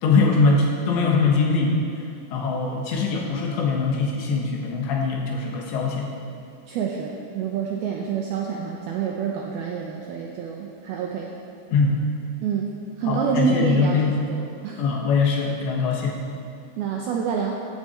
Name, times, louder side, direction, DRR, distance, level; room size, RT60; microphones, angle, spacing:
voice 1, 0.0-1.8 2.3-6.1 11.7-12.0 13.1-14.1 14.8-16.2, left 4 dB, 70° left, -1 dB, 3.6 m, -22 dB
voice 2, 6.7-11.3 12.4-12.7 13.0-14.8 16.8-17.5, right 6 dB, 85° right, 0 dB, 2.2 m, -27 dB
15.5 x 12.0 x 4.4 m, 2.4 s
omnidirectional pair, 5.5 m